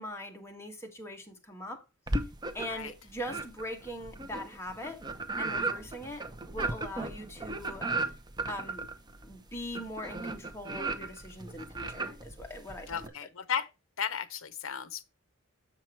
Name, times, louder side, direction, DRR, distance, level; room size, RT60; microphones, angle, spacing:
voice 1, 0.0-1.8 2.5-5.0 5.4-7.9 8.5-8.9 9.2-13.3, left 1 dB, 10° left, 1.5 m, -41 dB
sound 1, 2.1-2.9 3.2-13.1, right 3 dB, 20° right, 0.7 m, -36 dB
voice 2, 12.9-13.7 14.0-15.0, left 8 dB, 65° left, 0.7 m, -34 dB
7.4 x 5.9 x 4.4 m
head